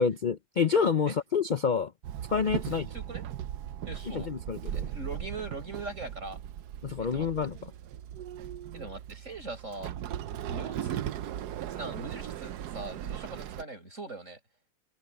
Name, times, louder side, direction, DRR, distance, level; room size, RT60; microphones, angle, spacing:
voice 1, 0.0-1.9 2.3-2.9 4.1-4.9 6.8-7.7, left 6 dB, 65° left, 0.4 m, -28 dB
Walk footsteps / Chatter / Hiss, 2.0-13.6, right 11 dB, 80° right, 1.3 m, -38 dB
voice 2, 2.7-3.2 3.9-4.3 4.7-6.4 7.1-7.3 8.7-9.9 10.5-11.0 11.7-14.4, right 2 dB, 50° right, 7.4 m, -41 dB
omnidirectional pair, 1.7 m